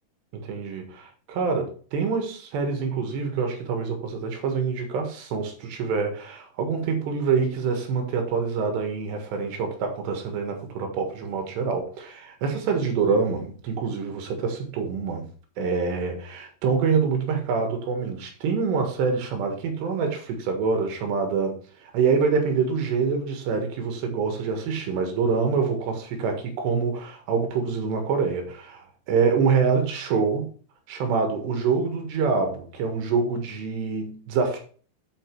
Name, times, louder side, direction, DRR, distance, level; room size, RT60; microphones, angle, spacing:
voice 1, 0.3-15.3 15.6-21.6 21.9-30.5 30.9-34.6, right 5 dB, 85° right, 3.7 m, -26 dB
9.0 x 4.8 x 4.6 m
omnidirectional pair, 4.8 m